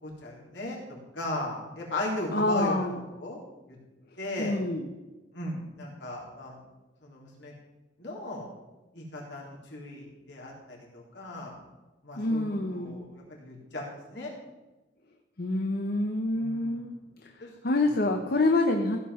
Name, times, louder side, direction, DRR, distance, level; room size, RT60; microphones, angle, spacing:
voice 1, 0.0-2.8 3.1-3.4 3.7-3.8 4.2-4.5 5.3-6.6 7.0-7.5 8.0-8.5 8.9-11.6 12.0-12.4 12.7-14.3 16.3-16.8 17.4-17.5, left 1 dB, 75° left, -3 dB, 3.8 m, -37 dB
voice 2, 2.3-3.0 4.4-4.9 12.2-13.1 15.4-16.9 17.2-19.0, left 2 dB, 55° left, 4 dB, 0.9 m, -27 dB
15.5 x 5.7 x 6.4 m, 1.1 s
head